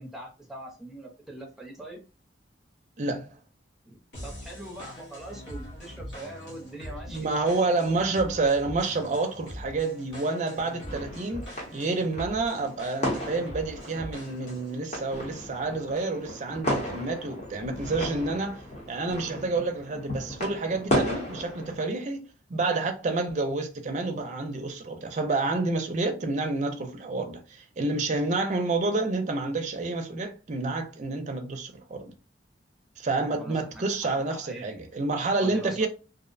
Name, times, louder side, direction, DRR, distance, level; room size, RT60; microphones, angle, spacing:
voice 1, 0.0-2.0 3.8-7.3 33.4-34.7 35.4-35.9, right 1 dB, ahead, 0.6 m, -42 dB
voice 2, 3.0-3.3 7.1-18.6 18.9-32.0 33.0-35.9, right 3 dB, 40° right, 0.4 m, -29 dB
sound 1, 4.1-14.8, equal, 75° left, 0.9 m, -43 dB
sound 2, 10.7-21.8, equal, 40° left, 0.9 m, -34 dB
2.5 x 2.0 x 2.5 m
head